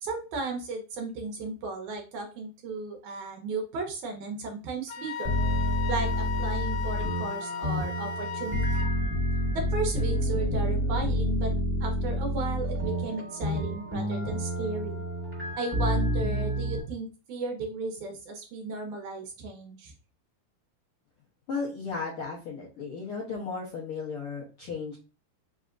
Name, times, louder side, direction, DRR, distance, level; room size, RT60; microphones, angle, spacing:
voice 1, 0.0-5.3 5.9-8.9 9.5-11.5 11.8-15.0 15.6-19.9, right 3 dB, 75° right, 2 dB, 2.0 m, -35 dB
Wind instrument woodwind instrument, 4.9-8.9, left 7 dB, 90° left, 2.3 m, -36 dB
sound 1, 5.2-16.8, equal, 5° right, 1.0 m, -29 dB
voice 2, 21.5-25.0, left 4 dB, 70° left, -5 dB, 1.3 m, -35 dB
5.0 x 3.4 x 2.5 m, 0.33 s
omnidirectional pair, 3.9 m